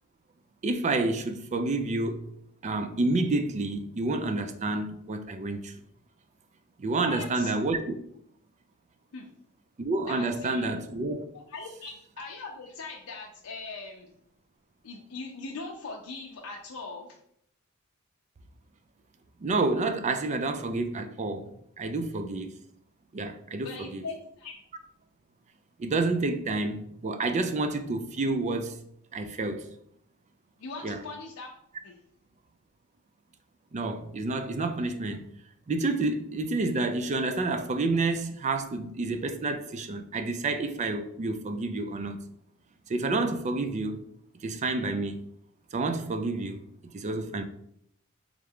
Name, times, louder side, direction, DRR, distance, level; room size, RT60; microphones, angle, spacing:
voice 1, 0.6-2.3 2.6-5.7 6.8-8.0 9.8-11.2 19.4-22.5 23.1-24.0 25.8-28.8 29.1-29.7 30.8-31.0 33.7-35.2 35.7-42.2 42.9-44.0 44.4-45.2 45.7-46.6 46.9-47.4, right 2 dB, 35° right, 0.4 m, -29 dB
voice 2, 7.0-7.5 9.1-9.3 10.1-10.7 11.3-14.1 14.8-17.2 23.6-24.6 30.6-31.5 31.8-32.0, left 3 dB, 75° left, 0.5 m, -40 dB
3.6 x 3.3 x 3.5 m
head